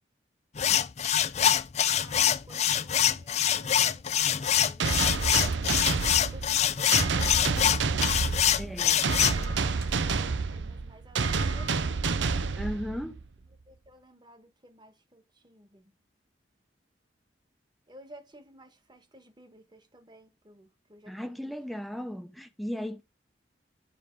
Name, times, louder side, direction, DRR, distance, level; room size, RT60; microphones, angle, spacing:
sound 1, 0.6-9.4, left 9 dB, 35° left, 0.4 m, -25 dB
voice 1, 2.0-5.9 6.2-8.2 9.2-12.0 13.7-15.9 17.9-21.5, equal, 25° right, 1.5 m, -54 dB
sound 2, 4.8-13.3, right 4 dB, 80° right, 0.7 m, -29 dB
sound 3, 5.9-7.9 8.2-8.3 8.6-8.7 9.0-11.0, right 2 dB, 55° right, 1.9 m, -50 dB
voice 2, 8.6-9.2 12.6-13.2 21.1-23.0, equal, ahead, 0.7 m, -36 dB
10.0 x 5.0 x 4.6 m
head